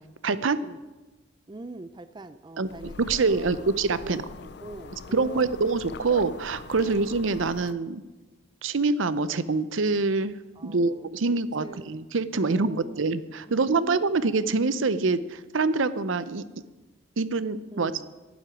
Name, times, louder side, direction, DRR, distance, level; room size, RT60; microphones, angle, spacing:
voice 1, 0.2-0.6 2.6-2.7 3.1-4.2 5.1-8.0 8.6-10.4 10.6-16.4 17.2-17.9, right 3 dB, 70° right, 15 dB, 0.6 m, -25 dB
voice 2, 1.5-3.7 4.0-5.6 6.8-7.1 10.6-11.9 12.4-13.0 13.5-14.2 17.7-18.1, right 2 dB, 20° right, 12 dB, 0.4 m, -43 dB
sound 1, 2.6-7.7, left 4 dB, 55° left, 0.4 m, -42 dB
11.5 x 7.7 x 9.7 m, 1.2 s
head